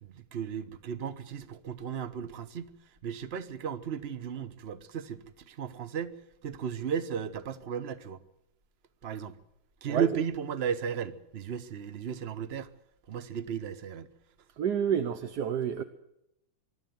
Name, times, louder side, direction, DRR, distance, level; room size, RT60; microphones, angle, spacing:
voice 1, 0.0-2.7 3.0-8.2 9.0-9.3 9.8-12.7 13.1-14.1, right 7 dB, 45° right, 0.9 m, -35 dB
voice 2, 14.6-15.8, right 8 dB, 60° right, 1.3 m, -29 dB
24.0 x 12.5 x 9.3 m
omnidirectional pair, 2.4 m